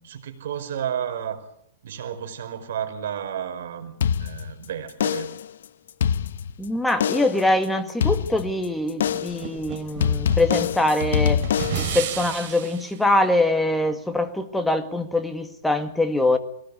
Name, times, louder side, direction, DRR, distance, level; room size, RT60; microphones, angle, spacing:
voice 1, 0.0-1.4 1.8-3.9 4.2-5.3, right 9 dB, 65° right, 8 dB, 5.1 m, -32 dB
sound 1, 4.0-4.6 5.0-5.5 5.9-6.6 7.0-7.5 8.0-8.6 9.0-9.5 10.0-12.0, left 8 dB, 75° left, 0.9 m, -24 dB
voice 2, 6.6-11.4 11.8-16.4, left 2 dB, 5° left, 6 dB, 1.8 m, -23 dB
sound 2, 9.1-12.9, right 10 dB, 45° right, 5.2 m, -33 dB
23.5 x 18.5 x 8.5 m, 0.73 s
hypercardioid pair, 155°, 0 cm